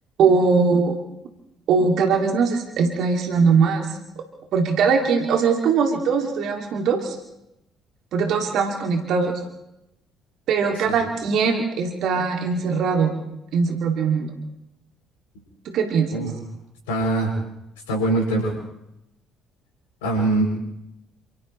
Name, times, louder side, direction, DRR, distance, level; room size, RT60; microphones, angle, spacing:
voice 1, 0.2-1.0 1.7-4.2 4.5-7.2 8.1-9.4 10.5-13.1 13.5-14.3 15.7-16.1, right 5 dB, 55° right, 3 dB, 2.5 m, -21 dB
voice 2, 16.9-17.3 17.9-18.5 20.0-20.6, right 2 dB, 70° left, 2 dB, 7.2 m, -22 dB
29.0 x 28.0 x 3.2 m, 0.85 s
figure-of-eight pair, 50°, 0 cm